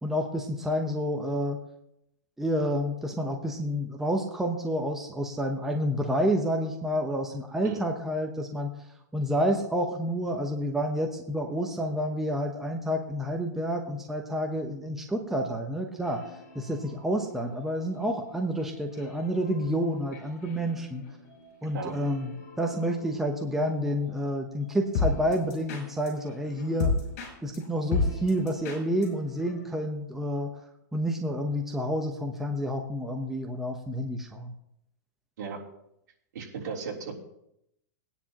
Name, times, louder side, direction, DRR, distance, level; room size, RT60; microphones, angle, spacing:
voice 1, 0.0-1.6 2.4-8.7 9.1-16.2 16.5-21.0 21.6-26.9 27.4-30.6 30.9-34.5, equal, 5° right, 2 dB, 0.9 m, -29 dB
sound 1, 16.0-29.7, left 4 dB, 45° left, 6.0 m, -36 dB
voice 2, 36.3-37.2, right 5 dB, 65° right, -3 dB, 3.5 m, -35 dB
20.5 x 10.0 x 3.0 m, 0.79 s
hypercardioid pair, 160°, 10 cm